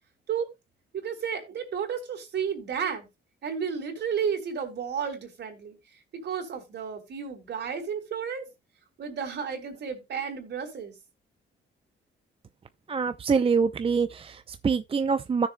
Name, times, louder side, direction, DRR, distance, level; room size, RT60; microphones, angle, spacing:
voice 1, 0.9-3.1 3.4-5.8 6.1-8.4 9.0-10.9, right 7 dB, 60° right, 3.7 m, -32 dB
voice 2, 12.9-15.5, right 5 dB, 30° right, 0.5 m, -25 dB
16.0 x 6.8 x 2.2 m
cardioid pair, 90°, 20 cm